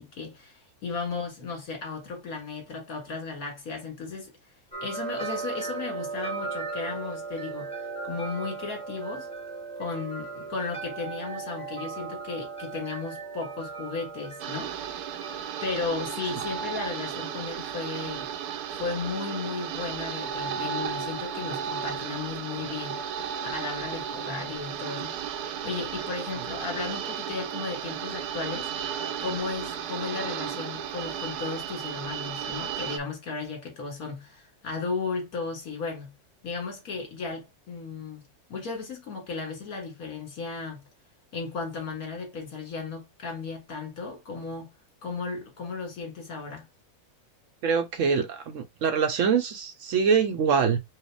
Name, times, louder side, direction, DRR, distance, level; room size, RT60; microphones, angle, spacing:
voice 1, 0.0-4.3 4.8-7.7 8.0-9.3 9.8-14.7 15.6-18.3 18.7-23.0 23.5-25.1 25.6-28.7 29.2-36.1 36.4-38.2 38.5-40.9 41.3-44.7 45.0-46.7, left 4 dB, 70° left, 2.2 m, -35 dB
sound 1, 4.7-15.7, right 4 dB, 5° left, 0.9 m, -37 dB
sound 2, 14.4-33.0, right 8 dB, 85° right, 1.2 m, -34 dB
voice 2, 47.6-50.8, right 6 dB, 65° right, 0.8 m, -24 dB
4.7 x 2.2 x 4.6 m
omnidirectional pair, 1.6 m